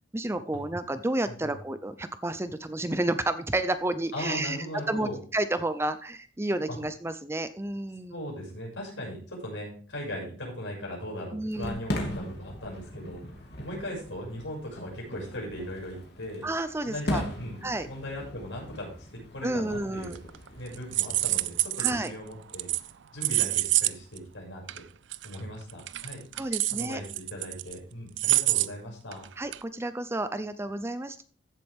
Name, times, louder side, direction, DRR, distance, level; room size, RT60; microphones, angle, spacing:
voice 1, 0.1-8.2 11.3-11.8 16.4-17.2 17.6-17.9 19.4-20.2 21.8-22.1 26.3-27.0 29.4-31.2, right 1 dB, 15° right, 11 dB, 0.5 m, -31 dB
voice 2, 4.1-5.2 6.7-6.8 8.1-13.2 13.6-16.4 16.8-20.2 20.6-22.7 23.1-24.8 25.2-26.2 26.7-29.3, equal, 80° left, -1 dB, 6.1 m, -38 dB
Fireworks, 11.5-21.4, left 1 dB, 55° left, 2.7 m, -39 dB
sound 1, 20.0-20.5 20.7-22.1 22.5-22.9 23.2-23.9 24.2-24.3 24.7-24.8 25.1-25.3 25.7-27.7 28.2-28.7 29.1-29.3 29.5-29.6, right 18 dB, 65° right, 0.4 m, -26 dB
15.0 x 7.5 x 3.5 m, 0.44 s
head